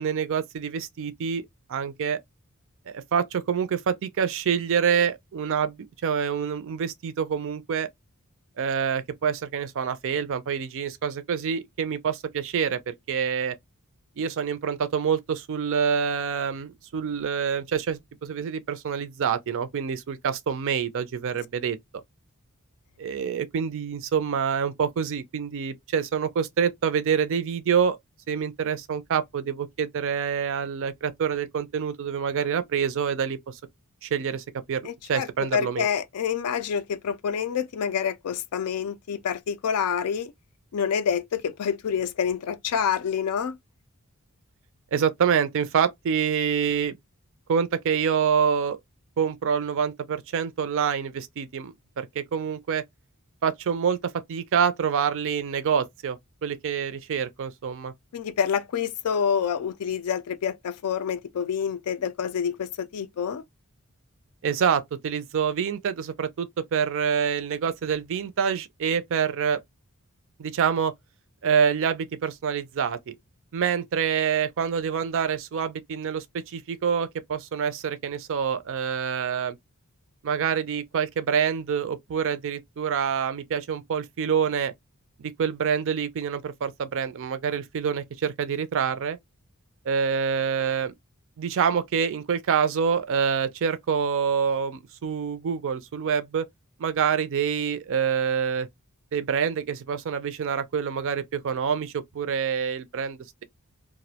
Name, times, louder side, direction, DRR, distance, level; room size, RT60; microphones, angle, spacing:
voice 1, 0.0-1.4 1.7-2.2 2.9-5.8 6.0-7.9 8.6-13.5 14.2-21.8 23.0-28.0 28.3-33.6 34.0-34.8 35.1-35.9 44.9-47.0 47.5-48.8 49.2-52.8 53.4-57.9 64.4-69.6 70.4-70.9 71.4-73.1 73.5-79.6 80.2-84.7 85.2-89.2 89.9-90.9 91.4-96.5 96.8-98.7 99.1-103.4, right 7 dB, 60° right, 0.4 m, -26 dB
voice 2, 34.8-35.3 35.5-40.3 40.7-43.6 58.1-63.4, left 7 dB, 75° left, 0.4 m, -27 dB
2.3 x 2.1 x 2.7 m
head